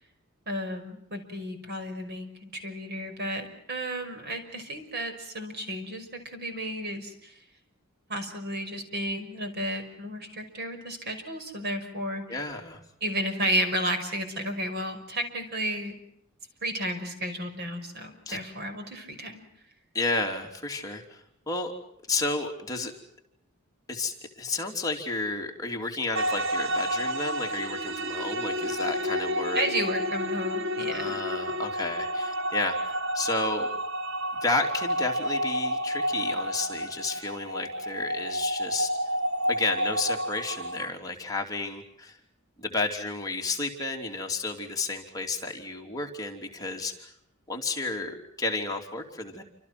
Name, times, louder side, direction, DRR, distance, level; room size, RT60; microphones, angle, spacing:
voice 1, 0.5-7.3 8.1-12.4 13.0-15.9 16.6-19.4 29.5-31.2, right 1 dB, 50° right, 7 dB, 5.7 m, -32 dB
voice 2, 12.3-12.8 18.3-18.4 19.9-21.7 22.1-22.9 23.9-29.7 30.8-32.8 33.1-33.7 34.4-38.9 39.5-42.2 42.6-47.1 47.5-49.4, left 3 dB, 15° left, 1 dB, 3.3 m, -32 dB
sound 1, 26.1-40.9, equal, 70° right, 1.3 m, -30 dB
28.5 x 26.5 x 6.1 m, 0.74 s
head